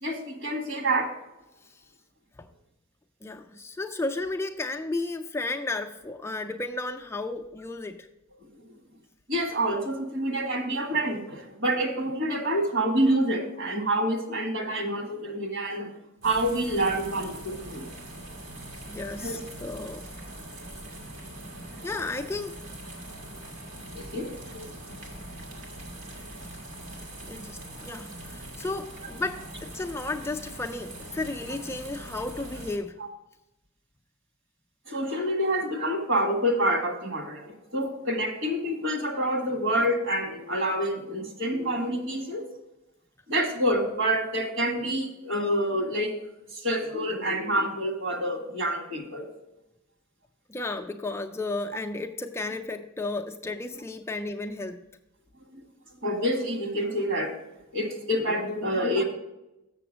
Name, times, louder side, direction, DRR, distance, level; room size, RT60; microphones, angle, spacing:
voice 1, 0.0-1.1 9.3-15.9 16.2-17.8 19.2-19.4 23.9-24.7 34.9-42.4 43.3-46.1 46.5-49.3 55.5-55.6 56.0-57.3 57.7-59.0, right 1 dB, 65° right, 3 dB, 1.6 m, -27 dB
voice 2, 3.2-8.1 18.9-20.0 21.8-22.6 27.3-33.0 50.5-54.8, left 2 dB, 10° left, 4 dB, 0.3 m, -33 dB
sound 1, 16.2-32.8, right 1 dB, 90° right, 1.9 m, -42 dB
6.9 x 6.8 x 4.9 m, 0.93 s
head